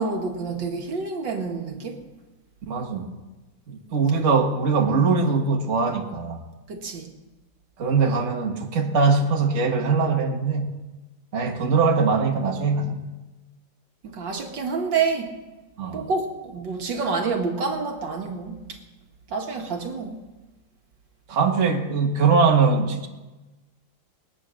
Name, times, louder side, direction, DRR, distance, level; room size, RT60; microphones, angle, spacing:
voice 1, 0.0-2.0 6.7-7.1 14.0-15.3 15.9-18.8 19.3-20.2, right 4 dB, 75° right, 3 dB, 2.2 m, -28 dB
voice 2, 2.7-3.1 3.7-6.4 7.8-10.8 11.3-13.0 15.8-16.1 21.3-23.1, right 4 dB, 40° right, 1 dB, 1.8 m, -22 dB
22.0 x 9.1 x 6.4 m, 1.1 s
omnidirectional pair, 2.0 m